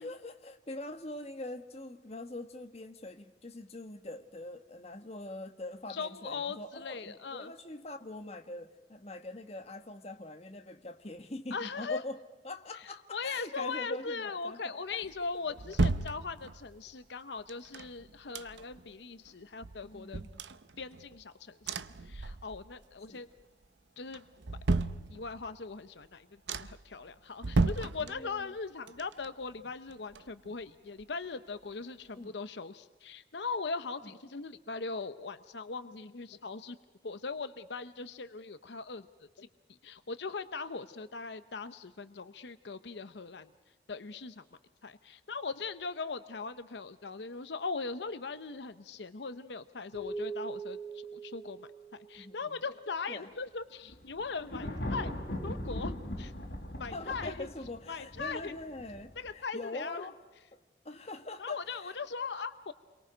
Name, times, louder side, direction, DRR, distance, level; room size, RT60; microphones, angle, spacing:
voice 1, 0.0-12.2 12.4-15.0 19.8-20.4 23.1-23.3 28.0-28.5 32.1-32.4 34.0-34.1 52.2-52.6 53.1-53.3 56.8-60.2 60.5-60.6 60.8-62.0, left 2 dB, 35° left, 1.3 m, -43 dB
voice 2, 5.9-7.5 11.5-12.0 13.1-20.2 20.8-23.3 24.0-24.2 25.1-36.8 37.0-39.1 39.4-39.5 39.8-43.5 43.9-44.4 44.8-51.7 52.1-55.1 55.4-56.3 56.8-57.5 57.9-58.6 59.2-60.1 61.4-62.7, left 4 dB, 75° left, 0.8 m, -40 dB
sound 1, 15.0-16.8 17.5-18.9 19.3-19.4 19.6-21.2 21.6-22.8 23.1-23.6 24.1-25.6 26.0-26.1 26.5-26.9 27.4-28.6 28.9-30.7 31.0-31.1, right 3 dB, 75° right, 0.7 m, -34 dB
sound 2, 49.9-52.5, right 4 dB, 40° right, 4.8 m, -41 dB
Thunder, 53.9-59.3, left 1 dB, 55° left, 4.6 m, -39 dB
29.5 x 23.0 x 5.1 m
head